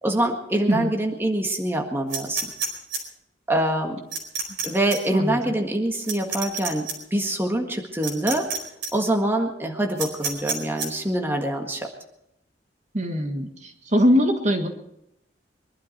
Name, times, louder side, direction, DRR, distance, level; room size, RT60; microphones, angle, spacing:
voice 1, 0.0-2.5 3.5-4.0 4.6-8.5 8.9-11.9, right 1 dB, 15° right, 2 dB, 1.7 m, -25 dB
sound 1, 2.1-3.0 4.1-4.7 4.9-5.0 6.1-6.9 8.0-8.6 8.8-8.9 10.0-10.9, right 5 dB, 75° right, 4.5 m, -28 dB
voice 2, 5.1-5.5 12.9-13.5 13.9-14.7, equal, 40° right, 4 dB, 1.7 m, -21 dB
23.0 x 12.0 x 4.5 m, 0.80 s
head